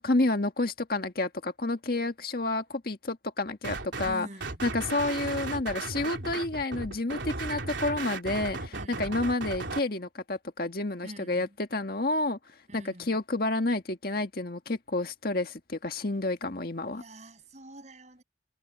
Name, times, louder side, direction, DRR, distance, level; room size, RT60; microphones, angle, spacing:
voice 1, 0.0-4.3 4.6-12.4 12.7-17.0, left 2 dB, 55° left, 1.7 m, -30 dB
sound 1, 3.6-4.1 4.4-9.8, right 3 dB, 85° right, 3.5 m, -35 dB
voice 2, 4.0-4.6 8.7-9.2 11.0-11.6 12.7-13.2 16.9-18.2, right 1 dB, 40° right, 7.7 m, -46 dB
open air
head